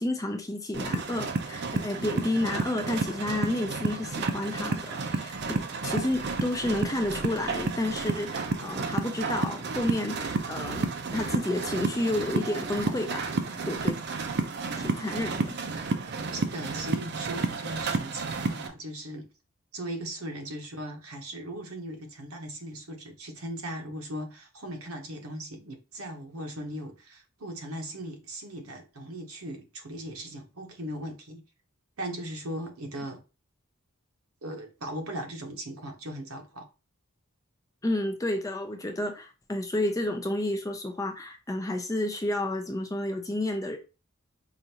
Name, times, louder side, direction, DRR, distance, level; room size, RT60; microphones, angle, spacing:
voice 1, 0.0-14.0 14.7-15.6 37.8-43.8, left 1 dB, 15° left, 0.5 m, -31 dB
sound 1, 0.7-18.7, right 3 dB, 50° right, 0.6 m, -31 dB
voice 2, 16.3-19.3 19.7-31.4 32.0-33.2 34.4-36.7, right 1 dB, 80° right, 1.0 m, -38 dB
5.0 x 2.5 x 2.9 m
head